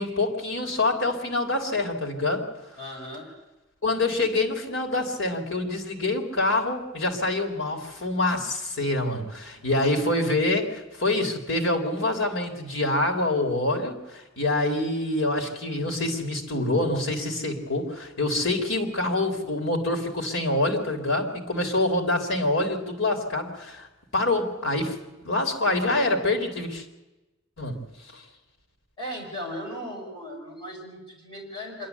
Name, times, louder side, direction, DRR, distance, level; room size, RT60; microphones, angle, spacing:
voice 1, 0.0-2.5 3.8-23.9 24.1-25.0 25.2-26.8 27.6-27.8, left 2 dB, 75° left, 3 dB, 3.6 m, -26 dB
voice 2, 2.8-3.3 9.5-9.9 29.0-31.9, equal, 25° left, -2 dB, 5.1 m, -37 dB
25.5 x 12.5 x 8.2 m, 1.0 s
head